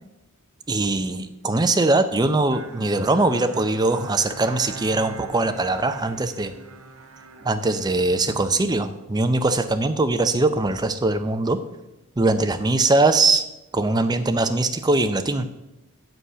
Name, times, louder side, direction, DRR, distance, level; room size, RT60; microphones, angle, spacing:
voice 1, 0.7-6.5 7.4-11.6 12.2-13.4 13.7-15.5, right 2 dB, 20° right, 9 dB, 0.5 m, -21 dB
Bowed string instrument, 2.5-9.2, right 4 dB, 65° right, 1.0 m, -42 dB
7.8 x 6.4 x 5.6 m, 0.94 s
head